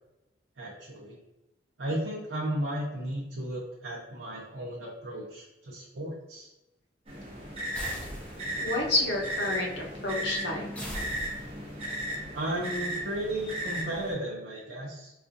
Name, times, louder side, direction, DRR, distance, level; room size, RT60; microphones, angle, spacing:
voice 1, 0.6-1.2 1.8-6.5 12.3-15.1, right 1 dB, 75° right, -5 dB, 0.7 m, -34 dB
sound 1, 7.1-14.1, right 1 dB, 30° right, 0.8 m, -36 dB
sound 2, 7.7-8.7 10.7-11.8, equal, 5° left, 0.5 m, -40 dB
voice 2, 8.6-10.6, left 2 dB, 60° left, -1 dB, 0.8 m, -29 dB
4.1 x 2.4 x 2.6 m, 0.96 s
head